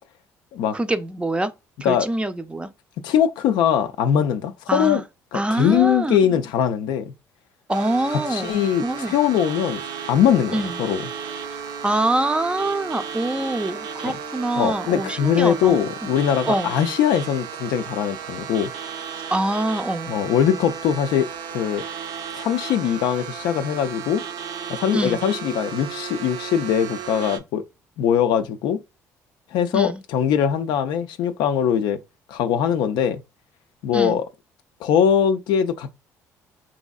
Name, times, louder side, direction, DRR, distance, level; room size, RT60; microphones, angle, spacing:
voice 1, 0.7-1.5 1.8-2.7 4.7-5.0 5.3-6.2 7.7-9.1 10.5-10.7 11.8-15.8 16.5-16.7 19.3-20.1 24.9-25.2 29.7-30.0 33.9-34.2, right 1 dB, 15° right, 0.4 m, -24 dB
voice 2, 3.0-5.0 5.3-7.1 8.1-9.8 10.1-11.0 14.0-14.2 14.5-18.7 20.1-21.9 22.4-24.2 24.7-27.6 28.0-28.8 29.5-32.0 32.3-33.2 33.8-34.3 34.8-35.9, left 8 dB, 70° left, 0.3 m, -21 dB
sound 1, 7.7-27.4, right 7 dB, 65° right, 0.5 m, -34 dB
3.1 x 2.6 x 2.3 m
hypercardioid pair, 55°, 8 cm